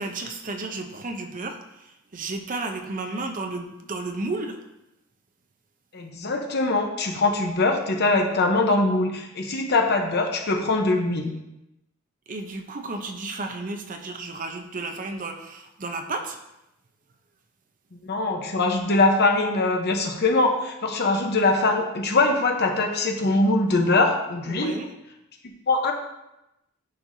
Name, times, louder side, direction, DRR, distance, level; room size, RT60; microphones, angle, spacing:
voice 1, 0.0-4.6 12.3-16.4 24.4-24.9, right 3 dB, 40° right, 4 dB, 0.7 m, -33 dB
voice 2, 5.9-11.3 18.0-24.8 25.7-25.9, left 2 dB, 50° left, 3 dB, 0.9 m, -22 dB
10.5 x 4.5 x 2.7 m, 0.90 s
head